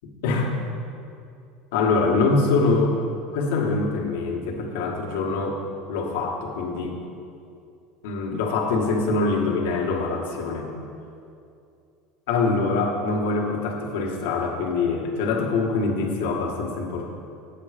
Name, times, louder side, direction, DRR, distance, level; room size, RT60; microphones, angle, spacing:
voice 1, 0.2-0.5 1.7-3.1 3.3-5.6 5.9-7.0 8.0-10.7 12.3-17.1, left 3 dB, 80° left, 0 dB, 1.5 m, -24 dB
7.9 x 7.8 x 5.0 m, 2.5 s
supercardioid pair, 120°, 0 cm